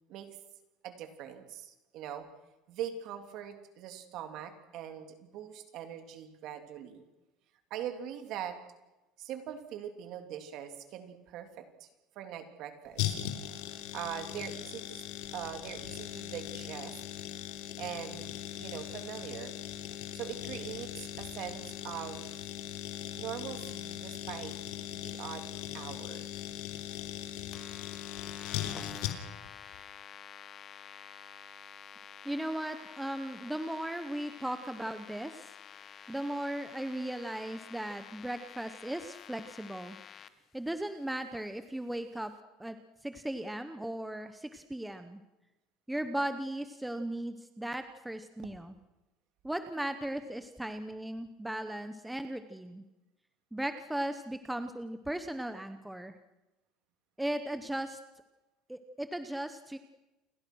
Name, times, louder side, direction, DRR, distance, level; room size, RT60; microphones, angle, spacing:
voice 1, 0.8-2.3 2.7-7.0 7.7-8.6 9.2-11.9 12.1-13.1 13.9-15.0 15.3-16.9 17.8-19.5 20.1-22.4 23.2-24.6 24.9-25.5 25.7-26.2, right 10 dB, 50° right, 7 dB, 3.2 m, -42 dB
sound 1, 13.0-29.5 29.7-29.8, left 11 dB, 80° left, 3.2 m, -39 dB
sound 2, 27.5-40.3, left 8 dB, 25° left, 1.1 m, -50 dB
voice 2, 32.2-35.5 36.1-40.0 40.5-42.3 42.6-42.8 43.0-45.2 45.9-48.7 49.4-52.8 53.5-56.1 57.2-58.0 58.7-59.8, right 1 dB, 5° right, 9 dB, 0.9 m, -37 dB
29.0 x 22.0 x 6.3 m, 1.0 s
cardioid pair, 165°, 0 cm